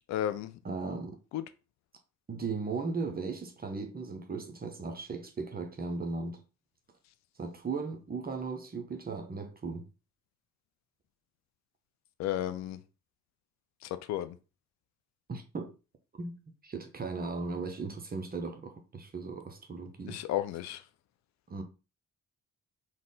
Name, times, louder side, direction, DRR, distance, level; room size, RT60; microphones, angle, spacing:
voice 1, 0.1-0.5 1.3-1.4 12.2-12.8 13.8-14.4 20.1-20.8, left 12 dB, 45° left, 0.4 m, -33 dB
voice 2, 0.6-1.2 2.3-6.4 7.4-9.9 15.3-15.7 16.2-16.4 16.6-20.2 21.5-21.6, right 4 dB, 20° right, 0.6 m, -37 dB
3.7 x 2.1 x 3.7 m
figure-of-eight pair, 40°, 42 cm